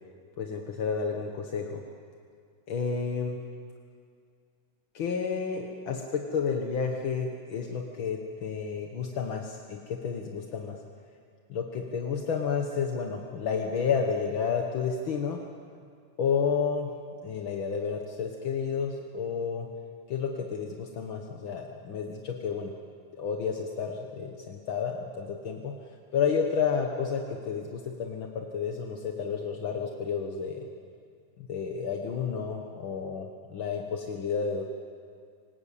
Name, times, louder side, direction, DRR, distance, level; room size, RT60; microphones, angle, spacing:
voice 1, 0.4-1.8 2.7-3.4 4.9-10.8 11.5-15.4 16.2-16.9 17.2-19.7 20.1-22.7 23.2-25.7 26.1-30.7 31.4-34.6, left 6 dB, 55° left, 2 dB, 1.5 m, -31 dB
27.0 x 19.5 x 8.5 m, 2.2 s
omnidirectional pair, 4.0 m